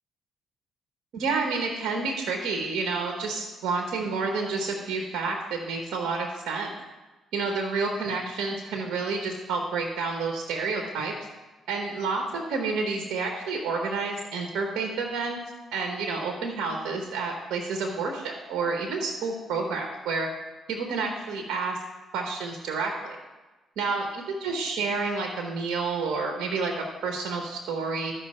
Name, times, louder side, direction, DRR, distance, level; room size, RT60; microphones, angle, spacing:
voice 1, 1.1-6.7 7.3-11.1 11.7-15.4 15.7-20.3 20.7-21.8 22.1-23.2 23.8-28.1, right 4 dB, 80° right, 2 dB, 1.2 m, -29 dB
13.5 x 5.6 x 4.4 m, 1.2 s
cardioid pair, 90°, 0 cm